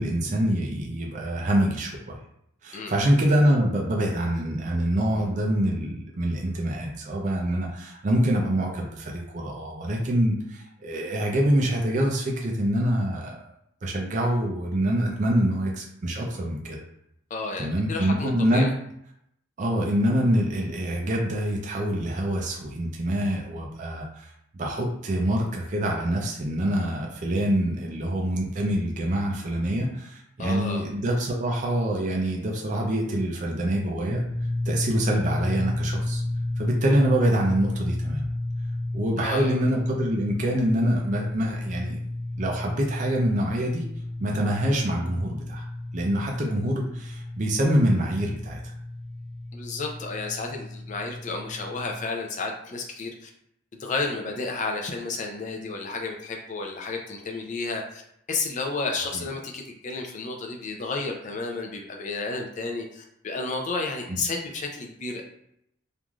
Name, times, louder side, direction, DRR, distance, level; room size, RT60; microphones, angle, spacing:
voice 1, 0.0-2.2 2.6-13.4 13.8-16.8 17.6-18.7 19.6-24.3 24.6-34.2 34.7-36.2 36.6-38.3 38.9-42.0 42.4-43.9 44.2-45.6 45.9-48.7 59.1-59.2 64.1-64.2, right 1 dB, 40° right, 0 dB, 0.4 m, -25 dB
voice 2, 17.3-18.7 30.4-30.8 39.2-39.6 49.5-53.3 53.8-58.0 58.3-65.2, left 3 dB, 40° left, 2 dB, 0.4 m, -32 dB
sound 1, 34.1-51.9, left 1 dB, 20° left, 1.0 m, -32 dB
3.1 x 2.5 x 2.3 m, 0.75 s
head